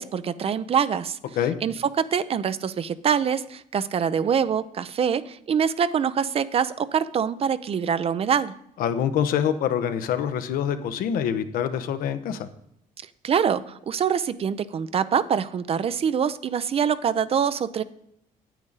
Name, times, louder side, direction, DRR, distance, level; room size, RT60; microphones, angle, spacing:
voice 1, 0.0-1.2 1.6-8.5 13.2-17.8, right 7 dB, 45° right, 15 dB, 0.5 m, -24 dB
voice 2, 8.8-12.5, left 9 dB, 80° left, 10 dB, 0.9 m, -25 dB
9.1 x 8.8 x 4.0 m, 0.75 s
cardioid pair, 105°, 15 cm